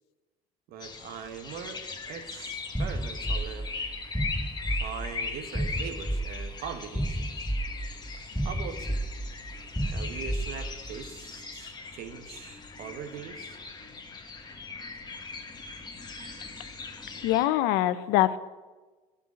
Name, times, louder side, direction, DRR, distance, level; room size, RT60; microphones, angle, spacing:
voice 1, 0.7-3.7 4.8-7.5 8.4-9.0 9.9-13.6, right 7 dB, 70° right, 8 dB, 1.3 m, -41 dB
sound 1, 0.8-17.5, left 4 dB, 25° left, 1.5 m, -40 dB
sound 2, 2.7-11.0, right 1 dB, 5° left, 0.4 m, -32 dB
voice 2, 17.2-18.4, left 14 dB, 80° left, 13 dB, 0.7 m, -23 dB
11.0 x 5.5 x 8.4 m, 1.3 s
supercardioid pair, 85°, 16 cm